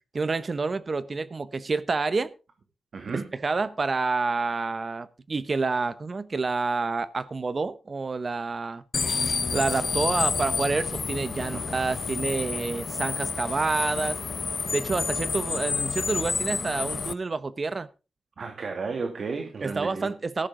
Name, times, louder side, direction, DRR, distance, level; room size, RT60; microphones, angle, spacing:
voice 1, 0.1-2.3 3.1-8.8 9.5-14.2 14.7-17.9 19.6-20.5, right 4 dB, 35° right, 0.8 m, -28 dB
voice 2, 2.9-3.3 11.5-11.6 18.4-20.1, right 4 dB, 55° right, 2.4 m, -33 dB
sound 1, 8.9-17.1, left 5 dB, 45° left, 0.6 m, -29 dB
14.5 x 11.5 x 3.7 m
wide cardioid pair, 140°, 0 cm